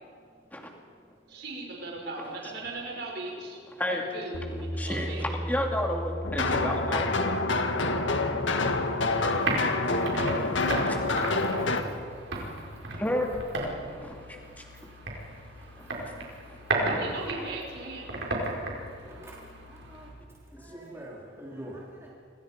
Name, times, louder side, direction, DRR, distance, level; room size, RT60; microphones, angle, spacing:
voice 1, 1.3-3.6 3.9-4.5 4.8-5.3 16.9-18.1, right 2 dB, 55° right, -1 dB, 5.7 m, -37 dB
Bass guitar, 4.3-10.6, equal, 55° left, 3.3 m, -38 dB
voice 2, 4.8-7.2 10.3-11.7 12.9-13.4 13.9-14.4 14.8-14.9 15.8-15.9 16.5-16.6 20.5-20.6, left 1 dB, 10° left, 1 dB, 2.7 m, -32 dB
sound 1, 6.2-11.8, left 3 dB, 75° left, 1.7 m, -27 dB
sound 2, 8.7-20.1, right 2 dB, 75° right, 5.1 m, -35 dB
voice 3, 9.5-9.9 10.3-10.8 11.3-11.6 19.1-19.4 19.7-20.1 20.6-22.1, right 1 dB, 15° right, -5 dB, 3.3 m, -45 dB
29.5 x 25.5 x 5.3 m, 2.2 s
head